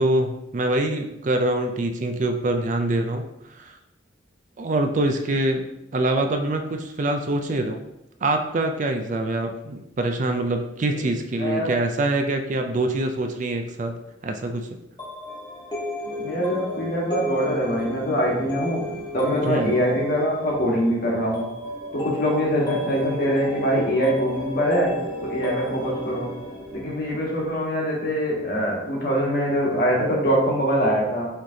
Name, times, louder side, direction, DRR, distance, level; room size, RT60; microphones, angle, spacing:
voice 1, 0.0-3.8 4.6-5.6 5.9-7.8 8.2-14.7 19.4-19.8, right 2 dB, 40° right, 5 dB, 0.4 m, -25 dB
voice 2, 11.4-11.7 16.2-18.8 19.1-21.4 21.9-24.9 25.2-26.3 26.7-31.3, equal, 50° left, -3 dB, 1.4 m, -23 dB
sound 1, 15.0-27.6, left 1 dB, 20° left, 0.9 m, -33 dB
5.7 x 3.2 x 2.8 m, 0.85 s
head